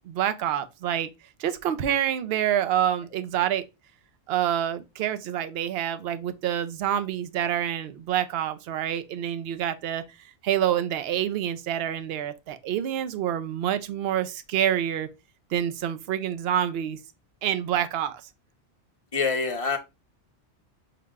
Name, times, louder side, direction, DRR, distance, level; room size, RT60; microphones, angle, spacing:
voice 1, 0.1-1.1 1.4-3.6 4.3-10.0 10.4-15.1 15.5-17.0 17.4-18.2, right 10 dB, 65° right, 0.7 m, -27 dB
voice 2, 19.1-19.8, left 4 dB, 35° left, 0.8 m, -25 dB
5.8 x 2.1 x 3.4 m
omnidirectional pair, 1.2 m